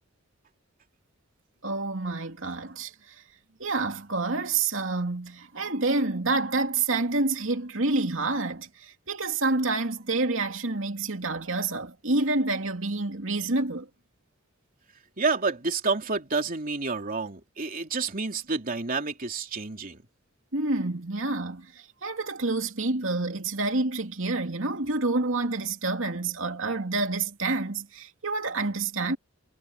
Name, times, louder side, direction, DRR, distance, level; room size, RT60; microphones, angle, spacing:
voice 1, 1.6-3.1 3.6-13.9 20.5-21.7 22.0-29.2, right 3 dB, 65° right, 3.0 m, -28 dB
voice 2, 15.2-20.0, right 4 dB, 45° right, 3.2 m, -29 dB
head